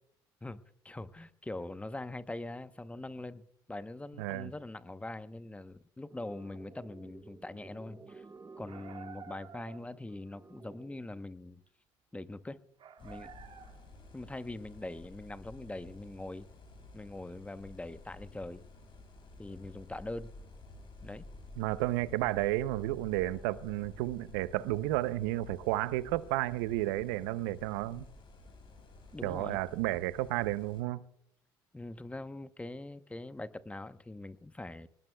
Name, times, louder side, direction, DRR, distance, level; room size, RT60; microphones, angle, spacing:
voice 1, 0.4-8.2 8.6-11.6 12.1-12.6 13.0-13.3 14.1-16.5 16.9-18.6 19.4-20.3 21.0-21.2 29.1-29.6 31.7-34.9, left 2 dB, 10° left, 0.9 m, -43 dB
voice 2, 4.2-4.5 21.6-28.1 29.2-31.0, right 16 dB, 85° right, 0.6 m, -32 dB
sound 1, 6.1-11.1, right 4 dB, 25° right, 1.4 m, -54 dB
sound 2, 8.7-10.0 12.8-14.0, right 7 dB, 50° right, 1.6 m, -50 dB
sound 3, 13.0-30.8, left 2 dB, 55° left, 5.9 m, -52 dB
25.0 x 19.5 x 2.3 m
hypercardioid pair, 70°, 11 cm